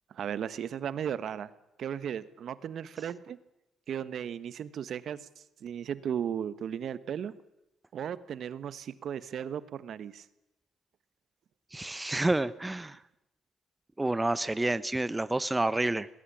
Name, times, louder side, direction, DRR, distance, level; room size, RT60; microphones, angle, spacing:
voice 1, 0.1-1.5 1.8-3.4 3.9-5.3 5.6-7.3 7.9-10.3, right 8 dB, 65° right, 15 dB, 1.2 m, -35 dB
voice 2, 11.7-13.0 14.0-16.1, right 2 dB, 15° right, 16 dB, 0.7 m, -29 dB
20.0 x 16.5 x 9.9 m, 0.91 s
cardioid pair, 90°, 0 cm